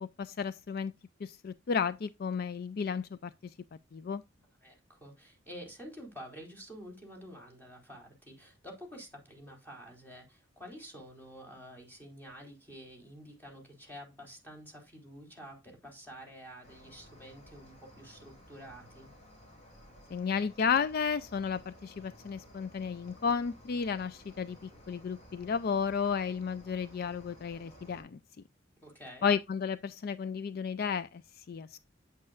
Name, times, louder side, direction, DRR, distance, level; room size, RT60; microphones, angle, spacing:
voice 1, 0.0-0.9 1.2-3.5 3.9-4.2 20.1-28.2 29.2-31.8, left 6 dB, 50° left, 0.4 m, -33 dB
voice 2, 4.6-19.1 28.8-29.3, equal, 10° left, 4.0 m, -49 dB
Cricket, 16.6-28.0, equal, 35° left, 4.8 m, -55 dB
8.8 x 8.5 x 2.4 m
head